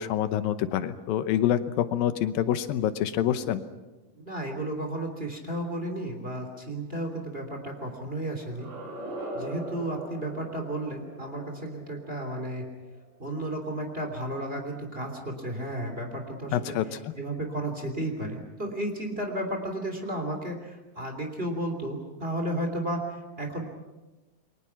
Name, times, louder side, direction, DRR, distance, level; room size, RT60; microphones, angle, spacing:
voice 1, 0.0-3.6 16.5-17.1, left 11 dB, 85° left, 11 dB, 2.7 m, -26 dB
voice 2, 4.1-8.7 9.3-12.6 13.2-16.8 17.2-23.6, right 1 dB, 15° right, 4 dB, 3.0 m, -33 dB
sound 1, 8.5-13.4, right 1 dB, 70° right, 8.2 m, -41 dB
29.5 x 23.5 x 5.9 m, 1.1 s
omnidirectional pair, 4.0 m